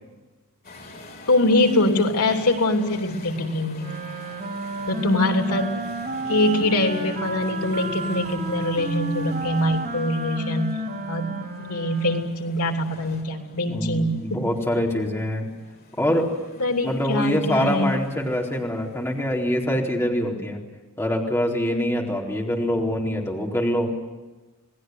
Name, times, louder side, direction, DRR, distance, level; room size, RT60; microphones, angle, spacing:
sound 1, 0.6-19.7, left 2 dB, 45° left, 5.8 m, -46 dB
voice 1, 1.3-4.0 4.9-5.8 6.2-10.8 11.1-14.4 16.6-17.9, left 1 dB, 90° left, 4 dB, 3.2 m, -23 dB
Wind instrument woodwind instrument, 3.8-12.4, right 1 dB, 45° right, 3.7 m, -32 dB
voice 2, 13.7-15.5 16.0-16.3 16.8-20.6 21.0-23.9, equal, 10° left, -2 dB, 4.2 m, -24 dB
29.0 x 19.5 x 9.4 m, 1.2 s
head